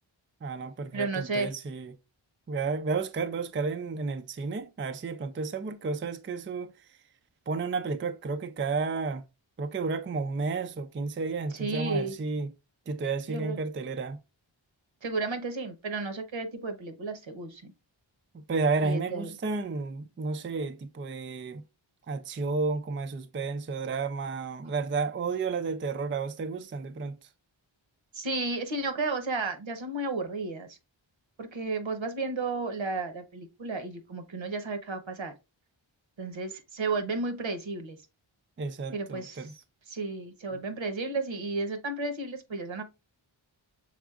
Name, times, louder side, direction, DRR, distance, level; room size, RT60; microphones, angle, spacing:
voice 1, 0.4-1.9 2.5-6.7 7.5-9.2 9.6-12.5 12.9-14.2 18.5-21.6 22.1-27.3 38.6-39.5, right 4 dB, 25° right, 0.4 m, -32 dB
voice 2, 0.9-1.5 11.5-12.1 13.3-13.6 15.0-17.7 18.8-19.3 28.1-30.8 31.4-35.3 36.2-38.0 38.9-42.8, right 3 dB, 70° right, 1.0 m, -33 dB
6.0 x 3.6 x 2.4 m
wide cardioid pair, 85°, 48 cm